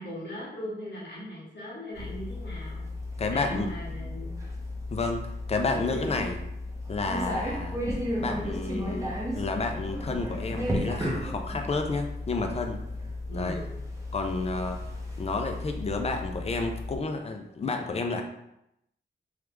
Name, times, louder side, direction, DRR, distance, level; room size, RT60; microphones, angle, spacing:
voice 1, 0.0-2.9 3.2-4.3 13.3-13.7, equal, 90° left, -6 dB, 1.0 m, -39 dB
sound 1, 1.9-17.0, left 1 dB, 15° right, 0.7 m, -34 dB
voice 2, 3.2-4.1 4.9-6.4 6.9-7.8 8.2-12.8 13.3-13.6 14.1-14.8 15.2-18.2, left 3 dB, 35° left, 5 dB, 0.4 m, -31 dB
3.1 x 2.3 x 3.4 m, 0.81 s
wide cardioid pair, 150°, 18 cm